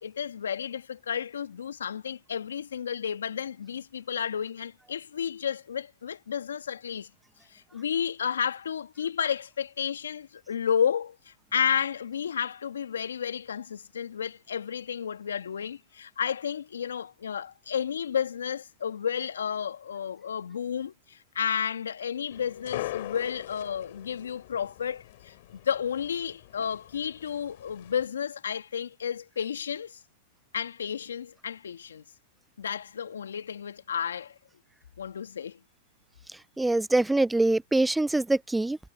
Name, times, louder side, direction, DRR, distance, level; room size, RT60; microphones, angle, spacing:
voice 1, 0.0-7.1 7.5-30.0 30.5-32.0 32.6-34.4 35.0-35.6, left 8 dB, 80° left, 2.0 m, -32 dB
sound 1, 22.3-28.1, left 17 dB, 60° left, 4.8 m, -41 dB
voice 2, 36.6-38.8, right 2 dB, 5° right, 0.7 m, -24 dB
hypercardioid pair, 110°, 0 cm